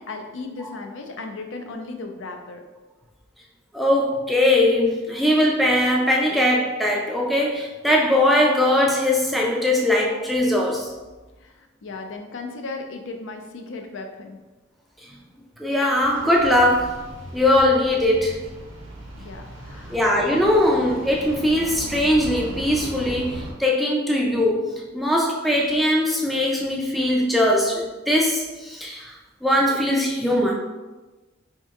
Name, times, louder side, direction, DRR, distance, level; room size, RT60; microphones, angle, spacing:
voice 1, 0.0-2.6 11.4-14.4 19.1-20.0, left 3 dB, 70° left, 4 dB, 0.4 m, -36 dB
voice 2, 3.7-10.9 15.0-15.1 15.6-17.0 17.3-18.4 19.9-30.6, left 1 dB, ahead, -2 dB, 0.4 m, -20 dB
sound 1, 16.0-23.5, right 1 dB, 80° right, 0.8 m, -37 dB
4.3 x 2.8 x 2.4 m, 1.2 s
head